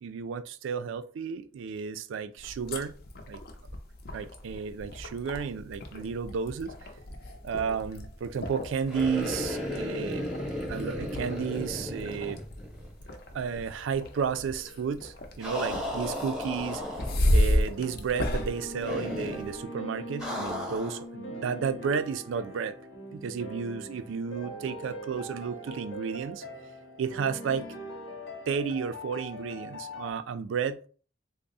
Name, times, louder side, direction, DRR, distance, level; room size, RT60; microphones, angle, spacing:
voice 1, 0.0-2.9 3.3-3.4 4.1-6.9 7.4-10.3 10.7-12.4 13.3-16.8 17.3-22.8 23.1-26.4 27.0-27.7 28.5-30.9, right 6 dB, 80° right, 0.3 m, -32 dB
sound 1, 2.4-19.6, left 1 dB, 50° left, 0.5 m, -33 dB
sound 2, 8.9-13.0 13.3-13.4 15.4-17.4 18.8-19.5 20.2-21.0, left 1 dB, 5° right, 0.8 m, -35 dB
sound 3, 17.1-30.1, equal, 70° left, 0.9 m, -41 dB
3.4 x 2.0 x 3.9 m
head